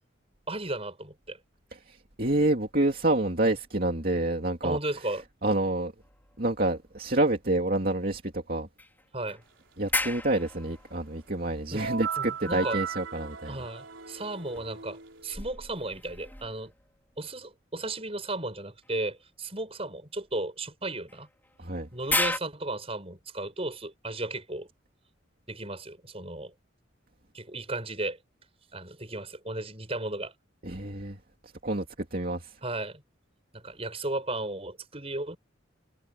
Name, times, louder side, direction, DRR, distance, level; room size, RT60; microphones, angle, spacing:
voice 1, 0.5-1.4 4.6-5.2 9.1-9.4 11.7-11.8 12.2-12.8 13.5-16.7 17.2-21.3 21.9-24.7 25.5-26.5 27.3-28.2 28.7-30.3 32.6-33.0 33.5-35.4, right 2 dB, 30° right, 7.9 m, -35 dB
voice 2, 1.9-4.8 5.4-5.9 6.4-8.7 9.8-13.6 21.6-21.9 30.6-31.2 31.6-32.5, right 2 dB, 45° right, 2.7 m, -28 dB
sound 1, 6.0-7.3 7.7-7.8 8.8-12.3 14.0-17.1 18.8-19.0 21.1-22.4, left 2 dB, 10° left, 4.4 m, -36 dB
sound 2, 11.8-15.4, right 6 dB, 75° right, 4.0 m, -37 dB
head